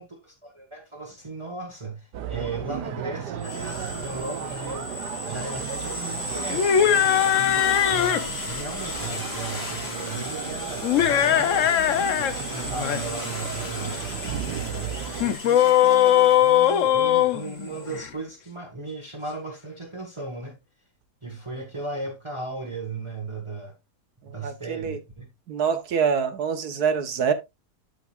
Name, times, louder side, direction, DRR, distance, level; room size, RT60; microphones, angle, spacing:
voice 1, 0.0-4.9 5.2-6.6 7.4-11.8 12.2-15.0 15.4-20.6 21.2-23.7 24.3-25.3, right 3 dB, 20° right, 1.6 m, -36 dB
sound 1, 2.1-15.4, right 9 dB, 90° right, 1.4 m, -35 dB
sound 2, 3.4-18.1, left 2 dB, 40° left, 2.1 m, -35 dB
sound 3, 6.5-8.3 10.8-12.3 12.6-13.0 15.2-18.1, left 10 dB, 60° left, 0.9 m, -20 dB
voice 2, 14.3-14.6 24.3-25.0 25.5-27.3, right 6 dB, 70° right, 1.7 m, -26 dB
12.0 x 5.3 x 2.5 m
omnidirectional pair, 1.7 m